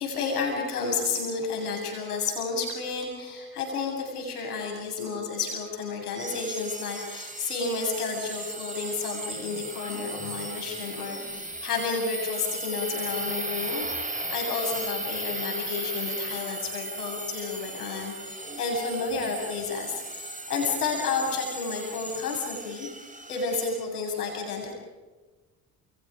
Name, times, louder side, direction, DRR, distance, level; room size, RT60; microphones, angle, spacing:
voice 1, 0.0-22.9 23.3-24.7, left 4 dB, 90° left, 1 dB, 7.9 m, -31 dB
sound 1, 6.2-23.8, right 2 dB, 15° right, 4.9 m, -36 dB
30.0 x 29.5 x 5.2 m, 1.3 s
hypercardioid pair, 50°, 44 cm